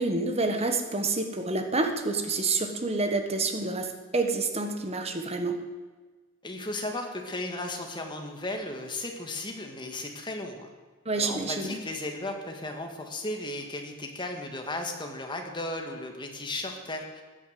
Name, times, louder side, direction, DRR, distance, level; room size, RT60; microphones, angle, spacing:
voice 1, 0.0-5.6 11.0-11.8, right 3 dB, 30° right, 6 dB, 1.5 m, -28 dB
voice 2, 6.4-10.7 11.1-17.2, left 2 dB, 20° left, 3 dB, 1.9 m, -35 dB
15.5 x 9.9 x 7.7 m, 1.3 s
head